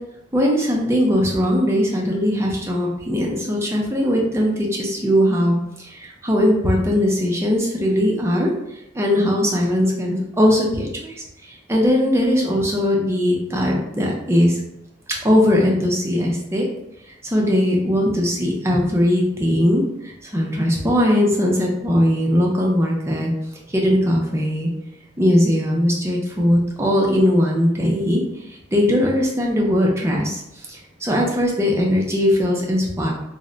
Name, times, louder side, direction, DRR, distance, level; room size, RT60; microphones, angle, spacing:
voice 1, 0.3-8.5 8.9-14.6 15.2-16.7 17.2-23.3 23.7-24.7 25.2-28.2 28.5-33.1, equal, 15° right, -2 dB, 0.4 m, -19 dB
2.1 x 2.0 x 3.7 m, 0.83 s
head